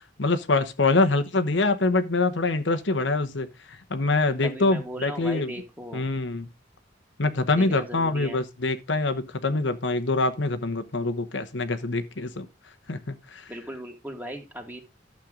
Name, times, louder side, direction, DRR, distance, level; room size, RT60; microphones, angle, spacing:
voice 1, 0.2-5.5 5.9-6.5 7.2-12.5 12.9-13.5, left 3 dB, 80° left, 1.1 m, -25 dB
voice 2, 4.4-6.0 7.5-8.4 13.5-14.8, equal, 10° right, 2.0 m, -37 dB
12.0 x 7.6 x 3.8 m
head